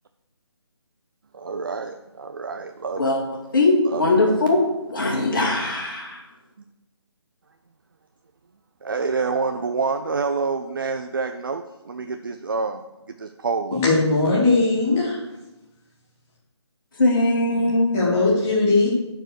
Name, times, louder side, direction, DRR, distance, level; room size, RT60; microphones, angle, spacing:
voice 1, 1.3-3.1 3.9-4.4 8.8-12.8 13.2-14.0, right 4 dB, 50° right, 7 dB, 0.5 m, -27 dB
voice 2, 3.5-4.6 4.9-6.2 17.0-18.0, left 2 dB, 45° left, -1 dB, 2.4 m, -20 dB
voice 3, 13.7-15.2 17.5-17.6 17.9-18.9, left 3 dB, 5° left, -5 dB, 0.5 m, -19 dB
10.5 x 4.6 x 6.4 m, 1.0 s
hypercardioid pair, 175°, 15 cm